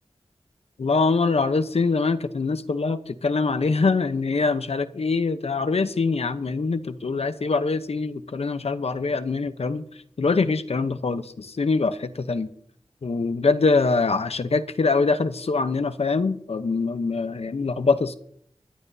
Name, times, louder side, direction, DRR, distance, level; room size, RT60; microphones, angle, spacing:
voice 1, 0.8-9.8 10.2-12.5 13.0-18.1, left 4 dB, 75° left, 0.8 m, -24 dB
23.0 x 11.5 x 2.8 m
wide cardioid pair, 80°, 11 cm